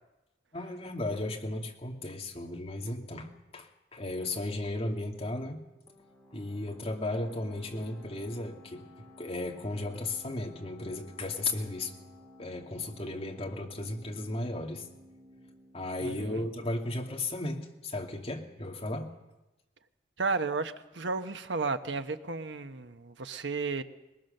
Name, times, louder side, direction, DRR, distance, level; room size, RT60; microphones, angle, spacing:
voice 1, 0.5-5.6 6.3-8.8 9.2-11.9 12.4-14.9 15.7-19.1, left 2 dB, 35° left, 0 dB, 2.4 m, -35 dB
sound 1, 5.9-17.2, left 1 dB, 5° left, 4.7 m, -55 dB
voice 2, 16.0-16.5 20.2-23.8, right 4 dB, 85° right, 8 dB, 1.1 m, -33 dB
21.5 x 20.5 x 6.7 m, 0.99 s
head